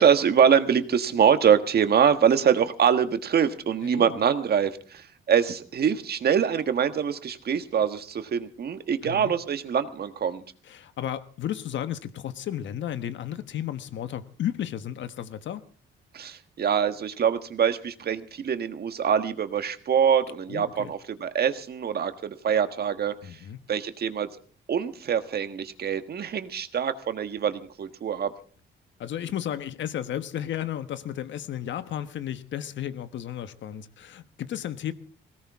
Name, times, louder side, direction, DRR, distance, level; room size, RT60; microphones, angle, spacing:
voice 1, 0.0-10.4 16.1-23.4 23.7-24.3 24.7-28.3, right 8 dB, 55° right, 9 dB, 1.5 m, -24 dB
voice 2, 9.0-9.3 10.7-15.6 20.5-20.9 23.2-23.6 29.0-34.9, left 10 dB, 70° left, 12 dB, 1.3 m, -33 dB
20.5 x 17.5 x 3.6 m, 0.41 s
cardioid pair, 90°, 20 cm